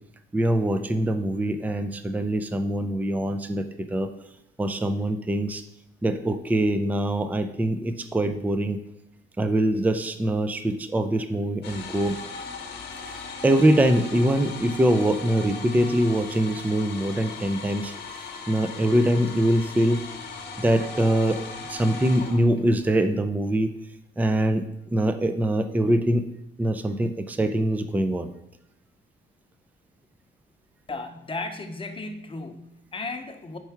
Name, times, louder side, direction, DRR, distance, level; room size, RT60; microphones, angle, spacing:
voice 1, 0.3-4.1 4.6-5.6 6.0-8.8 9.4-12.2 13.4-20.0 20.6-21.4 21.7-23.7 24.2-24.7 24.9-26.3 26.6-28.3, right 1 dB, 10° right, 9 dB, 0.4 m, -23 dB
sound 1, 11.6-22.9, left 4 dB, 60° left, 1.1 m, -38 dB
voice 2, 30.9-33.6, left 3 dB, 25° left, 5 dB, 0.8 m, -35 dB
4.7 x 4.4 x 5.7 m, 0.83 s
cardioid pair, 90°, 20 cm